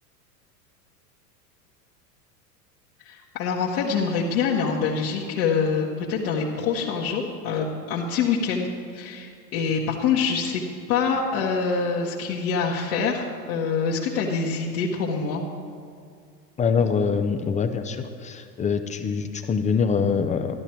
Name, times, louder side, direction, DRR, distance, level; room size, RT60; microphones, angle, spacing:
voice 1, 3.0-10.6 10.9-15.4, left 5 dB, 60° left, -5 dB, 1.6 m, -25 dB
voice 2, 16.6-20.6, left 5 dB, 15° left, 7 dB, 0.5 m, -24 dB
12.5 x 12.5 x 4.5 m, 2.3 s
hypercardioid pair, 95°, 49 cm